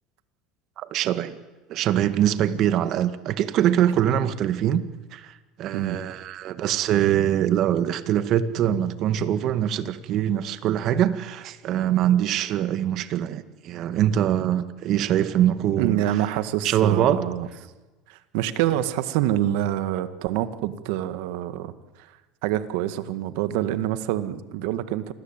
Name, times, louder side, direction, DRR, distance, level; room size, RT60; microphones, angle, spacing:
voice 1, 0.8-1.4 1.7-4.8 5.1-5.3 5.6-16.0 16.6-17.2, right 11 dB, 55° right, 12 dB, 1.8 m, -23 dB
voice 2, 15.8-17.5 18.1-21.7 22.4-25.1, right 13 dB, 75° right, 12 dB, 1.8 m, -26 dB
27.5 x 21.0 x 9.1 m, 1.2 s
supercardioid pair, 115°, 0 cm